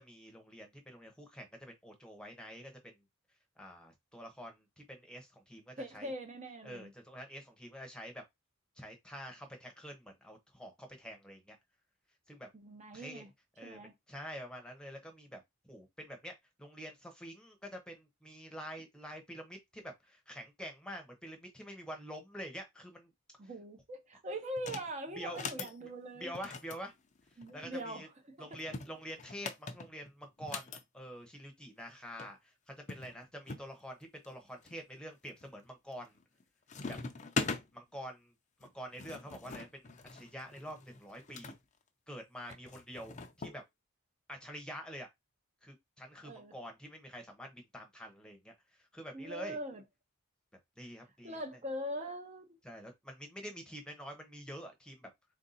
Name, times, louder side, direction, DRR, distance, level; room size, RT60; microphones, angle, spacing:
voice 1, 0.0-2.7 3.6-6.1 6.6-8.2 8.8-11.6 12.3-12.5 12.9-13.3 13.6-15.4 15.7-23.1 25.2-25.9 26.2-26.9 27.3-28.1 28.4-36.2 36.9-37.0 37.7-38.3 38.6-41.5 42.1-43.6 44.3-45.1 45.6-49.6 50.8-51.4 52.6-55.1, equal, 5° left, 0.9 m, -47 dB
voice 2, 5.8-6.9 12.5-13.3 13.6-13.9 23.4-26.3 27.4-28.6 46.2-46.5 49.1-49.8 51.2-52.5, right 1 dB, 35° right, 0.7 m, -42 dB
sound 1, 24.6-24.9 25.3-25.7 26.3-27.7 28.5-30.8 31.9-32.0 32.2-32.3 32.9-33.7 34.2-34.7 35.3-35.7 36.0-36.4 36.7-37.6 38.6-41.6 42.5-43.6, left 4 dB, 35° left, 0.5 m, -41 dB
3.6 x 2.6 x 4.0 m
head